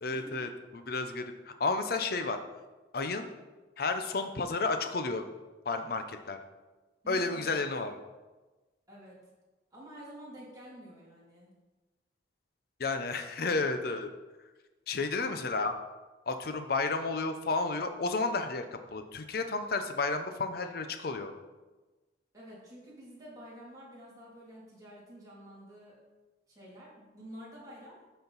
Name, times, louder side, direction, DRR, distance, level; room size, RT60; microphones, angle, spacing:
voice 1, 0.0-2.4 2.9-3.3 3.8-5.2 5.7-6.4 7.1-7.9 12.8-14.1 14.9-15.7 16.3-21.3, left 3 dB, 55° left, 7 dB, 0.6 m, -32 dB
voice 2, 7.0-7.6 8.9-9.2 9.7-11.5 22.3-26.0 26.5-28.0, equal, 20° right, -7 dB, 2.6 m, -49 dB
12.0 x 4.4 x 4.0 m, 1.2 s
head